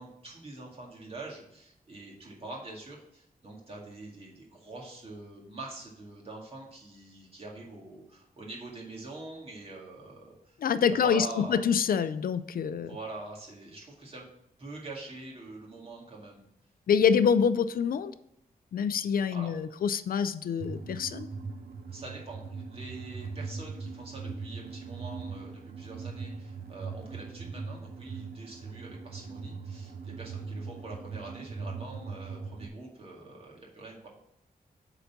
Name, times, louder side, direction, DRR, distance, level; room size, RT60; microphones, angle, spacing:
voice 1, 0.0-10.6 10.9-11.6 12.8-14.3 14.6-16.5 19.3-19.5 21.9-34.1, right 2 dB, 40° right, -2 dB, 2.0 m, -44 dB
voice 2, 10.6-12.9 16.9-18.1 18.7-21.3, left 7 dB, 70° left, 13 dB, 0.4 m, -26 dB
sound 1, 20.6-32.7, right 4 dB, 85° right, 0.8 m, -40 dB
8.0 x 4.0 x 5.8 m, 0.76 s
wide cardioid pair, 145°, 16 cm